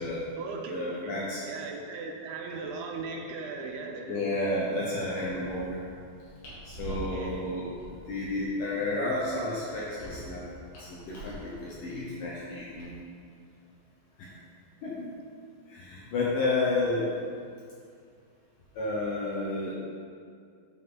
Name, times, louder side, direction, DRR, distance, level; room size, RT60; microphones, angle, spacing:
voice 1, 0.0-0.8 1.0-1.1 1.4-4.1 6.9-7.5, right 4 dB, 85° right, 1 dB, 3.0 m, -38 dB
voice 2, 0.7-1.4 4.1-5.8 6.7-7.7 8.1-12.9 14.2-14.3 14.8-15.1 15.7-17.1 18.8-19.7, left 2 dB, 85° left, -6 dB, 1.9 m, -31 dB
sound 1, 5.2-12.8, right 1 dB, 65° left, 4.0 m, -45 dB
9.2 x 5.5 x 3.8 m, 2.2 s
omnidirectional pair, 5.2 m